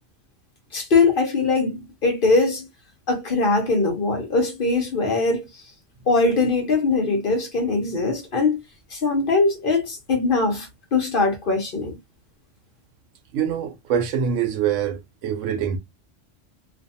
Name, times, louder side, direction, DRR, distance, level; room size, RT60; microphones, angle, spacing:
voice 1, 0.7-2.7 3.1-5.4 6.1-8.6 8.9-12.0, left 3 dB, 50° left, 0.8 m, -21 dB
voice 2, 13.3-15.8, right 8 dB, 85° right, 0.9 m, -24 dB
2.4 x 2.2 x 2.7 m
omnidirectional pair, 1.3 m